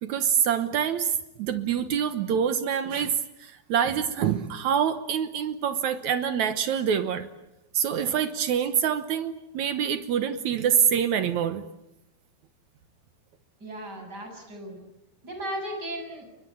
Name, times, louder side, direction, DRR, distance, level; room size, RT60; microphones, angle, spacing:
voice 1, 0.0-1.1 1.4-7.3 7.7-11.6, right 8 dB, 70° right, 10 dB, 1.8 m, -26 dB
voice 2, 13.6-14.8 15.2-16.3, right 1 dB, 25° right, 3 dB, 7.9 m, -36 dB
30.0 x 22.0 x 8.6 m, 0.90 s
omnidirectional pair, 4.7 m